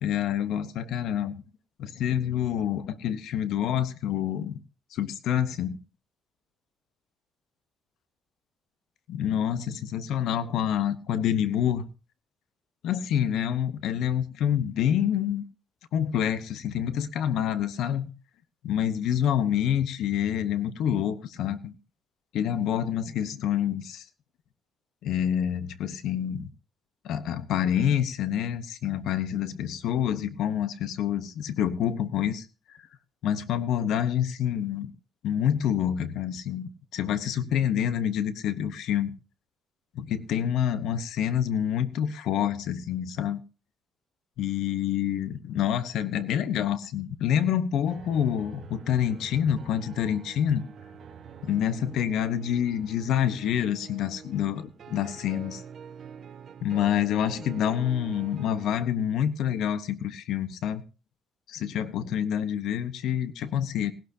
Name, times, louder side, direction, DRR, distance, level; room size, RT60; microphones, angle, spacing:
voice 1, 0.0-1.4 1.8-4.6 4.9-5.8 9.1-11.9 12.8-15.4 15.9-18.1 18.6-21.7 22.3-24.0 25.0-26.5 27.0-32.5 33.2-34.9 35.2-39.1 39.9-43.4 44.4-50.6 51.4-55.6 56.6-60.8 61.5-63.9, left 9 dB, 80° left, 1.0 m, -27 dB
Difficult Choices, 47.8-58.8, right 7 dB, 55° right, 1.4 m, -46 dB
19.0 x 12.0 x 2.8 m
cardioid pair, 105°, 0 cm